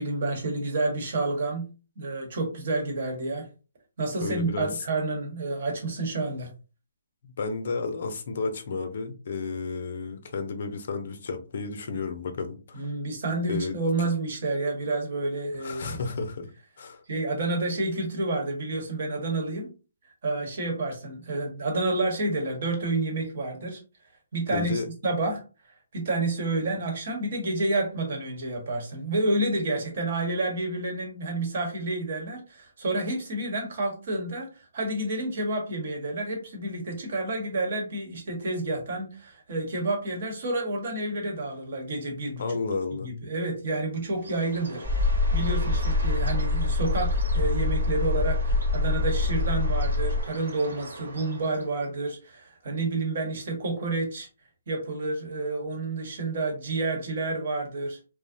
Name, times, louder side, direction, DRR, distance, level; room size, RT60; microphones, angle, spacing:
voice 1, 0.0-1.6 2.0-3.5 4.0-6.5 12.7-16.0 17.1-19.7 20.2-23.8 24.3-25.4 25.9-42.6 42.9-54.3 54.7-58.0, right 2 dB, 55° right, 1.0 m, -29 dB
voice 2, 4.2-4.8 7.4-12.8 13.5-13.8 15.6-16.5 16.8-17.0 24.5-24.9 42.4-43.1, left 4 dB, 60° left, 0.5 m, -32 dB
Bird, 44.2-51.9, right 2 dB, 80° right, 1.2 m, -42 dB
sound 1, 44.8-50.2, left 2 dB, 20° right, 0.6 m, -25 dB
2.5 x 2.0 x 2.6 m
hypercardioid pair, 145°, 0 cm